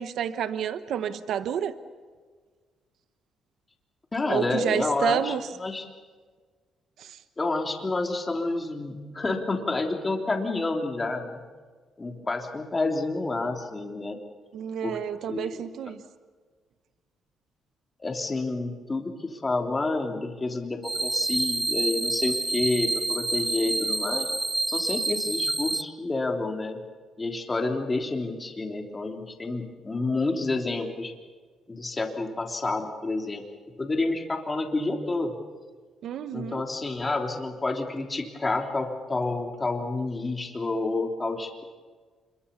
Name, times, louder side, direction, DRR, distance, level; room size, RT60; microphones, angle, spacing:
voice 1, 0.0-1.7 4.3-5.4 7.0-7.2 14.5-16.0 36.0-36.6, right 9 dB, 75° right, 11 dB, 1.1 m, -30 dB
voice 2, 4.1-5.3 5.6-5.9 7.4-11.4 12.0-14.2 14.8-15.0 15.3-15.8 18.0-24.3 24.7-26.8 27.2-31.1 31.7-33.4 33.8-35.4 36.3-41.6, left 2 dB, 25° left, 3 dB, 3.3 m, -29 dB
sound 1, 20.8-25.8, right 2 dB, 15° right, 0.6 m, -28 dB
26.5 x 22.5 x 7.0 m, 1.5 s
cardioid pair, 90°, 0 cm